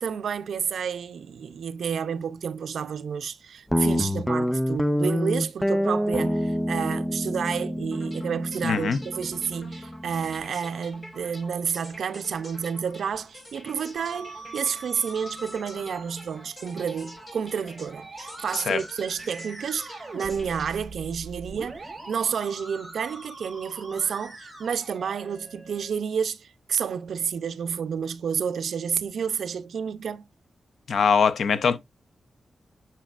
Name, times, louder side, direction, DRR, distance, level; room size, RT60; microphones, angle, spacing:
voice 1, 0.0-30.3, right 7 dB, 85° right, 0.5 m, -30 dB
Guitar, 3.7-10.4, equal, 5° left, 0.4 m, -27 dB
sound 1, 7.9-22.0, left 1 dB, 30° left, 4.5 m, -47 dB
voice 2, 8.6-9.0 18.5-18.8 30.9-31.8, left 6 dB, 75° left, 0.7 m, -22 dB
Musical instrument, 14.0-25.9, right 2 dB, 15° right, 2.0 m, -43 dB
7.4 x 5.7 x 2.4 m
wide cardioid pair, 175°, 0 cm